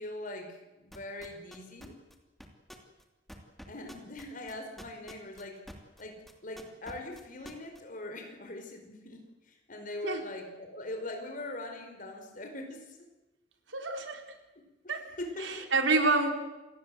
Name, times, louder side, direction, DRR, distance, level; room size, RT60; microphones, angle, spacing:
voice 1, 0.0-1.9 3.7-5.6 6.0-13.0 14.8-15.7, left 1 dB, 45° left, 4 dB, 5.2 m, -42 dB
sound 1, 0.9-6.0 6.3-7.8, equal, ahead, 2.8 m, -48 dB
voice 2, 13.7-14.2 14.9-15.1 15.4-16.3, right 3 dB, 85° right, 5 dB, 4.1 m, -27 dB
28.0 x 20.0 x 7.9 m, 1.1 s
head